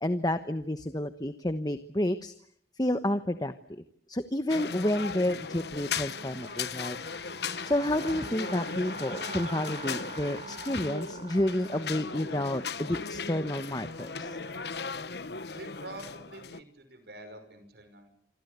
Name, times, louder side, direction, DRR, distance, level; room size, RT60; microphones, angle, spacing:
voice 1, 0.0-2.3 2.8-3.8 4.1-7.0 7.6-14.4, left 1 dB, 20° left, 10 dB, 1.1 m, -30 dB
sound 1, 4.5-16.6, left 5 dB, 70° left, 1.2 m, -37 dB
sound 2, 5.7-14.6, right 3 dB, 35° right, 3.8 m, -46 dB
voice 2, 15.5-18.1, right 1 dB, 65° right, 10 dB, 5.6 m, -46 dB
27.0 x 26.0 x 8.3 m, 0.67 s
head